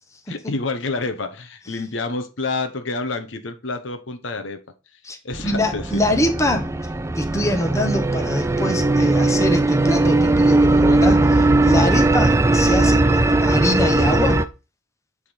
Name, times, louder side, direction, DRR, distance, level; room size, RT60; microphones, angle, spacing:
voice 1, 0.3-4.6 5.2-5.9, left 3 dB, 65° left, 0.9 m, -28 dB
sound 1, 5.3-14.5, right 2 dB, 15° right, 0.4 m, -18 dB
voice 2, 5.4-6.7 7.1-14.4, left 1 dB, 15° left, 1.0 m, -24 dB
8.3 x 3.6 x 4.9 m
head